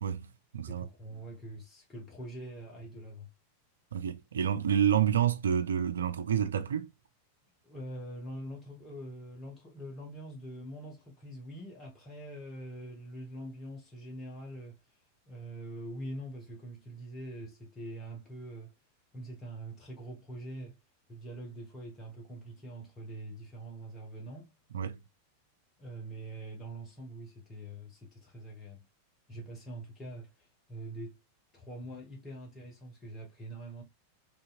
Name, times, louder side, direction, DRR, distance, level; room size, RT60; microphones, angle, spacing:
voice 1, 0.0-0.9 3.9-6.9 24.7-25.0, right 9 dB, 65° right, 0.4 m, -29 dB
voice 2, 0.7-3.3 7.6-14.8 15.2-18.7 19.1-20.8 21.1-24.5 25.8-28.8 29.3-31.2 31.5-33.8, right 1 dB, 20° left, 1.4 m, -44 dB
3.4 x 2.9 x 2.4 m
figure-of-eight pair, 90°, 0 cm